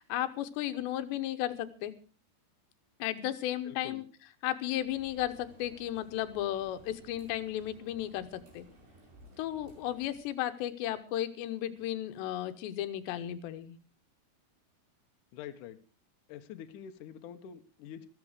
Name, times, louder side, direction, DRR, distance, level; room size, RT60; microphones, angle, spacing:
voice 1, 0.0-1.9 3.0-4.0 4.4-8.7 9.4-13.8, left 12 dB, 85° left, 10 dB, 3.2 m, -34 dB
voice 2, 3.6-4.0 15.3-15.8 16.3-18.1, left 9 dB, 70° left, 7 dB, 2.0 m, -46 dB
sound 1, 4.8-10.1, right 1 dB, 70° right, 7.1 m, -57 dB
14.5 x 14.0 x 4.9 m, 0.38 s
omnidirectional pair, 4.9 m